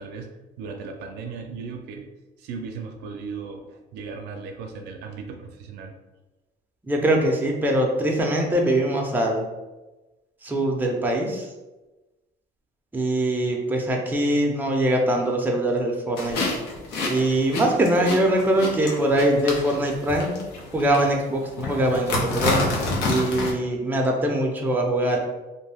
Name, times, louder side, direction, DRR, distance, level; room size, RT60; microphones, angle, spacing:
voice 1, 0.0-2.1 2.4-5.9, right 5 dB, 80° right, 3 dB, 0.4 m, -37 dB
voice 2, 6.9-9.5 10.4-11.5 12.9-16.4 17.1-20.4 20.7-22.7 23.0-25.2, right 1 dB, 10° right, 0 dB, 0.5 m, -22 dB
sound 1, 16.2-23.5, left 2 dB, 85° left, 0.7 m, -29 dB
2.5 x 2.1 x 3.4 m, 1.1 s
cardioid pair, 110°, 17 cm